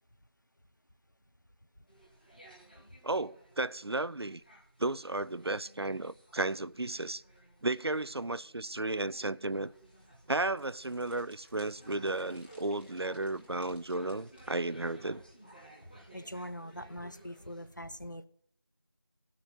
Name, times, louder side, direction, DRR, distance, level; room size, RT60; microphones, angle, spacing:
sound 1, 1.9-17.7, right 1 dB, 20° left, 1.4 m, -57 dB
voice 1, 3.0-4.4 4.8-7.2 7.6-9.7 10.3-15.2, right 2 dB, 80° right, 0.5 m, -34 dB
sound 2, 9.4-15.3, equal, 25° right, 2.5 m, -63 dB
voice 2, 16.1-18.3, equal, 50° left, 0.7 m, -42 dB
15.5 x 6.2 x 7.8 m
figure-of-eight pair, 180°, 13 cm